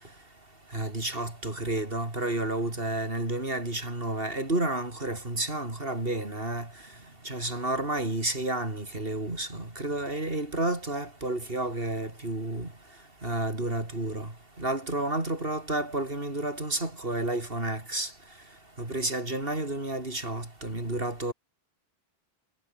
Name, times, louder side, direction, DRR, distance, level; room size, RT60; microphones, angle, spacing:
voice 1, 0.7-6.7 7.2-12.7 13.2-14.3 14.6-18.1 18.8-21.3, right 2 dB, 65° right, 4.9 m, -31 dB
omnidirectional pair, 1.0 m